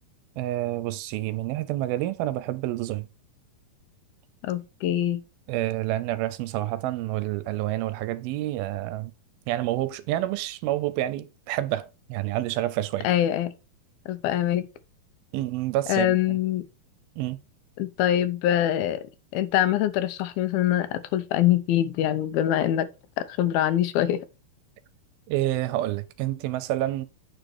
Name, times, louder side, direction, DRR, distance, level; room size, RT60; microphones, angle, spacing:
voice 1, 0.4-3.1 5.5-9.1 9.5-13.1 15.3-16.4 17.2-17.4 25.3-27.1, right 15 dB, 80° right, 2.4 m, -28 dB
voice 2, 4.4-5.2 13.0-13.5 14.1-14.7 15.9-16.7 17.8-19.1 19.3-22.9 23.2-24.3, left 12 dB, 80° left, 2.6 m, -24 dB
9.1 x 5.2 x 4.4 m
omnidirectional pair, 4.4 m